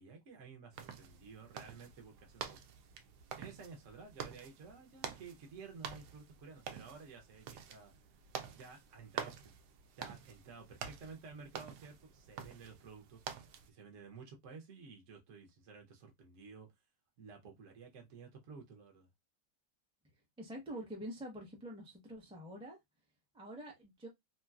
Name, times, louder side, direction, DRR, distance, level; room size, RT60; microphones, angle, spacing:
voice 1, 0.0-2.6 3.4-7.9 8.5-9.5 10.0-13.2 13.7-16.7 17.2-19.1, right 5 dB, 55° right, 1.0 m, -53 dB
sound 1, 0.7-13.7, right 7 dB, 75° right, 1.1 m, -48 dB
voice 2, 20.4-22.8 23.3-24.1, right 1 dB, 10° right, 0.3 m, -46 dB
3.1 x 2.8 x 2.3 m
omnidirectional pair, 1.9 m